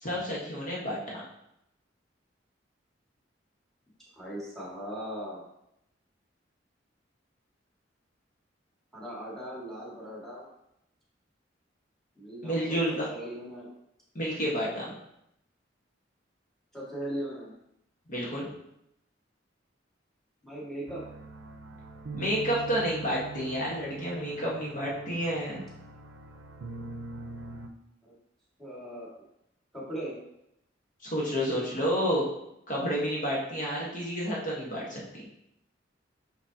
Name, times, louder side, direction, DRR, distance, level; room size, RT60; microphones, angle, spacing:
voice 1, 0.0-1.2 12.4-13.1 14.1-14.9 18.1-18.5 22.1-25.6 31.0-32.3 32.7-35.2, equal, 45° left, -5 dB, 1.4 m, -30 dB
voice 2, 4.1-5.4 8.9-10.5 12.2-13.7 14.8-15.0 16.7-17.5 20.4-21.0 28.6-29.1 29.7-30.2, right 1 dB, ahead, -6 dB, 1.9 m, -39 dB
sound 1, 20.9-27.7, right 3 dB, 80° right, 0.6 m, -43 dB
6.0 x 6.0 x 2.8 m, 0.80 s
head